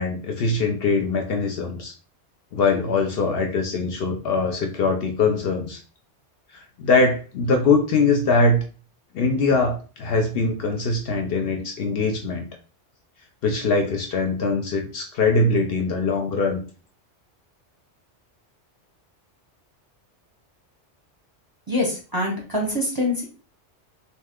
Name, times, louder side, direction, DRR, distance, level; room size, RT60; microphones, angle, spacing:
voice 1, 0.0-1.9 2.5-5.8 6.5-8.6 9.1-12.5 13.4-16.6, left 3 dB, 65° left, 3 dB, 0.7 m, -22 dB
voice 2, 21.7-23.2, left 1 dB, 25° right, -2 dB, 0.7 m, -24 dB
2.7 x 2.1 x 3.5 m, 0.37 s
omnidirectional pair, 1.2 m